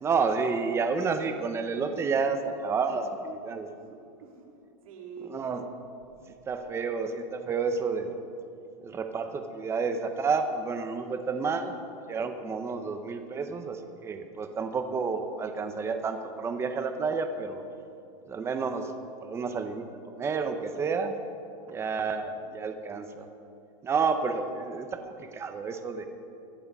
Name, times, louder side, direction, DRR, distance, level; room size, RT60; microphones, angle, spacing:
voice 1, 0.0-3.7 5.2-5.6 6.5-8.1 8.8-11.8 12.1-17.6 18.3-18.9 19.2-19.9 20.1-21.1 21.7-23.3 23.8-26.1, right 5 dB, 15° right, 7 dB, 0.8 m, -30 dB
voice 2, 1.8-2.4 2.9-3.1 3.7-4.5 4.8-5.4 21.6-22.0, right 6 dB, 75° right, 0 dB, 3.2 m, -48 dB
23.0 x 7.7 x 5.5 m, 2.5 s
supercardioid pair, 155°, 18 cm